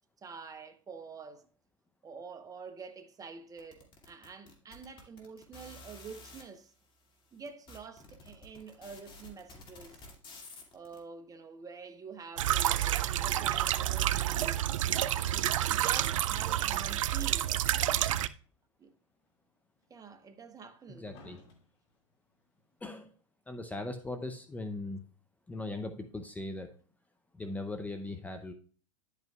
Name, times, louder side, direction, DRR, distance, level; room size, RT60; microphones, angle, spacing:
voice 1, 0.2-1.5 2.0-6.7 7.3-10.0 10.7-14.7 15.3-17.6 18.8-18.9 19.9-21.1, right 5 dB, 20° right, 0.9 m, -47 dB
sound 1, 3.6-6.4 7.1-7.2 7.4-11.0, left 2 dB, 30° left, 2.3 m, -51 dB
sound 2, 12.4-18.3, right 12 dB, 75° right, 0.4 m, -29 dB
sound 3, 16.5-17.5 17.8-17.9 18.8-18.9 19.8-19.9 20.6-21.9 22.8-22.9, left 3 dB, 55° left, 2.4 m, -55 dB
voice 2, 21.0-21.4 22.8-23.1 23.5-25.0 25.5-26.7 27.3-28.5, left 2 dB, 10° left, 0.7 m, -39 dB
10.5 x 8.2 x 2.4 m
hypercardioid pair, 100°, 17 cm